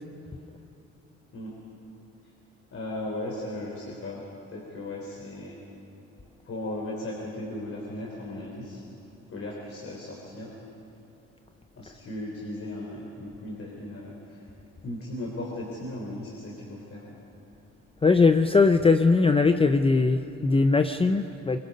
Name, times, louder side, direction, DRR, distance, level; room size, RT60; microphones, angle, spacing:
voice 1, 2.7-5.6 6.4-8.8 9.3-10.6 11.8-14.5 14.8-17.2, left 1 dB, 45° left, -3 dB, 3.6 m, -37 dB
voice 2, 18.0-21.6, left 4 dB, 20° left, 8 dB, 0.6 m, -20 dB
23.5 x 23.0 x 5.3 m, 2.7 s
cardioid pair, 90°, 30 cm